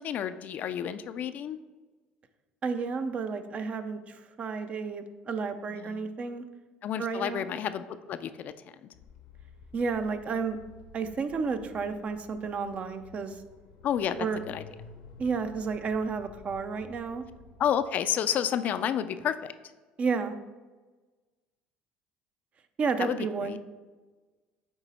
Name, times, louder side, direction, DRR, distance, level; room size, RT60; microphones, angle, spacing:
voice 1, 0.0-1.6 5.7-6.0 6.8-8.5 8.8-8.9 13.8-14.6 17.6-19.5 23.0-23.6, left 9 dB, 50° left, 12 dB, 0.3 m, -30 dB
voice 2, 2.6-6.5 7.0-7.5 9.7-10.6 10.9-13.4 14.2-14.4 15.2-17.2 20.0-20.3 22.8-23.6, right 5 dB, 40° right, 9 dB, 0.5 m, -31 dB
sound 1, 8.9-17.7, left 4 dB, 90° left, 0.8 m, -52 dB
8.2 x 3.0 x 4.2 m, 1.3 s
supercardioid pair, 95°, 3 cm